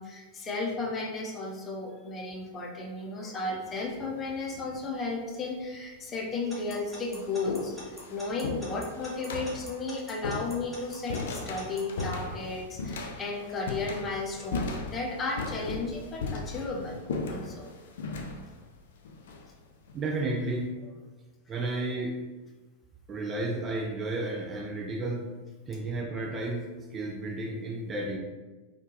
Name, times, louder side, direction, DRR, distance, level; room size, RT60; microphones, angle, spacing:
voice 1, 0.0-7.8 8.1-17.0 17.3-17.7 21.5-21.6, left 3 dB, 20° left, -2 dB, 0.6 m, -34 dB
sound 1, 3.7-4.1 5.1-5.2 6.0-6.1 6.5-20.0, left 3 dB, 60° left, 0.4 m, -37 dB
Alarm / Clock, 6.5-12.0, left 2 dB, 5° left, 1.0 m, -45 dB
voice 2, 19.9-20.7 21.5-22.2 23.1-25.3 25.7-28.2, right 2 dB, 20° right, 0 dB, 0.4 m, -32 dB
3.6 x 2.4 x 2.8 m, 1.2 s
figure-of-eight pair, 90°, 0 cm